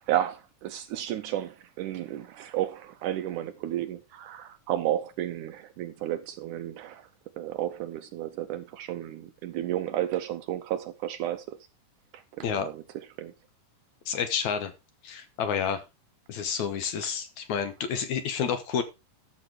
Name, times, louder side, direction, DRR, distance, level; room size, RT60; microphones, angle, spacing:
voice 1, 0.1-7.1 7.4-11.6 12.1-13.3 17.0-17.1, right 12 dB, 75° right, 1.9 m, -32 dB
voice 2, 14.1-14.7 15.0-15.8 16.3-18.8, left 7 dB, 65° left, 2.1 m, -29 dB
12.5 x 6.6 x 4.8 m
omnidirectional pair, 4.1 m